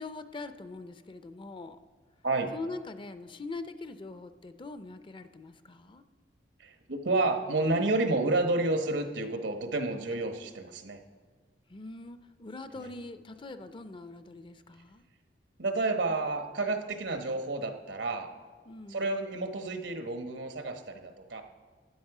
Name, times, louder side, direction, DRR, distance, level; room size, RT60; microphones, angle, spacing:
voice 1, 0.0-1.8 2.5-6.0 11.7-15.0 18.7-19.0, left 3 dB, 30° left, 11 dB, 0.5 m, -42 dB
voice 2, 6.6-11.0 12.7-12.9 15.6-18.3 18.9-21.4, right 2 dB, 85° right, 6 dB, 1.2 m, -30 dB
12.5 x 9.6 x 4.9 m, 1.5 s
head